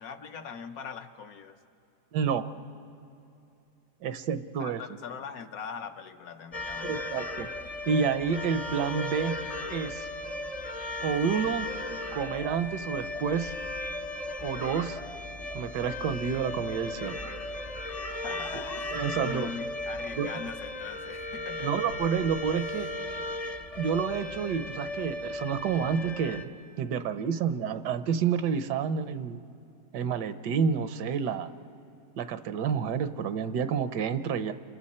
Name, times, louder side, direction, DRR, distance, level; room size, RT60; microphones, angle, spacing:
voice 1, 0.0-1.6 4.6-7.2 18.2-21.7, left 6 dB, 65° left, 7 dB, 1.3 m, -41 dB
voice 2, 2.1-2.5 4.0-4.8 6.9-7.5 7.8-9.4 9.7-10.1 11.0-11.7 12.1-13.6 14.4-15.0 15.5-17.2 18.5-18.6 18.9-19.5 20.2-20.3 21.6-22.9 23.8-26.5 26.8-29.4 29.9-31.5 32.2-34.5, right 7 dB, 80° right, 11 dB, 1.4 m, -29 dB
sound 1, 6.5-26.4, left 1 dB, 45° left, 0.5 m, -36 dB
30.0 x 27.0 x 4.3 m, 2.7 s
omnidirectional pair, 1.8 m